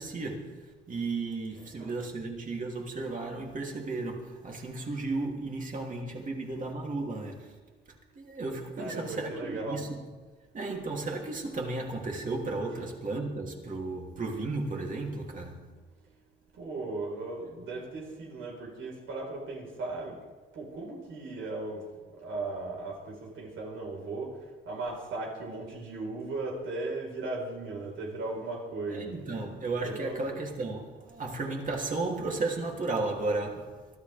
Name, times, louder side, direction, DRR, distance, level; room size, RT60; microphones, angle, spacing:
voice 1, 0.0-7.5 8.2-10.0 10.5-15.7 28.9-33.8, right 3 dB, 40° right, 3.0 m, -34 dB
voice 2, 1.5-2.0 8.8-9.9 12.7-12.8 15.2-15.3 16.5-20.2 20.5-21.9 22.2-24.4 24.6-29.2 29.8-30.4, right 2 dB, 80° right, 4.5 m, -37 dB
23.5 x 13.5 x 3.5 m
cardioid pair, 90°, 20 cm